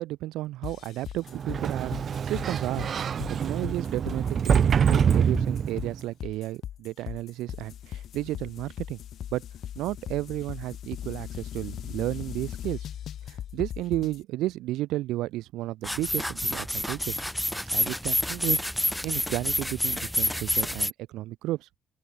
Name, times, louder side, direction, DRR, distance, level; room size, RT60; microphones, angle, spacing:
voice 1, 0.0-1.9 2.2-9.0 9.3-9.4 9.7-12.8 13.3-17.2 17.7-21.7, right 16 dB, 75° right, 3.4 m, -33 dB
sound 1, 0.6-14.2, left 10 dB, 65° left, 1.7 m, -39 dB
Sliding door, 1.3-6.0, right 7 dB, 55° right, 2.0 m, -25 dB
sound 2, 15.8-20.9, equal, 5° left, 0.8 m, -28 dB
open air
hypercardioid pair, 50°, 0 cm